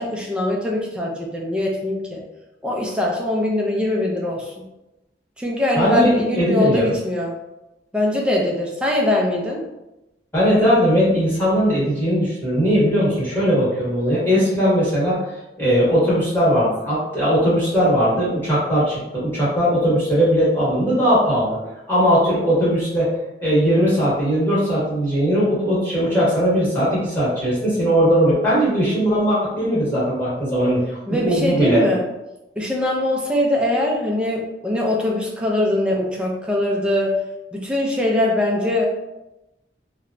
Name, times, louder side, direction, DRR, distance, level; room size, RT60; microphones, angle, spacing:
voice 1, 0.0-2.2 2.6-4.5 5.4-7.3 7.9-9.6 31.1-32.0 32.6-37.2 37.5-38.9, left 1 dB, 5° right, -2 dB, 0.4 m, -22 dB
voice 2, 5.7-6.9 10.3-15.2 15.6-21.6 21.9-31.8, equal, 10° left, -9 dB, 1.1 m, -19 dB
2.9 x 2.1 x 2.5 m, 0.96 s
head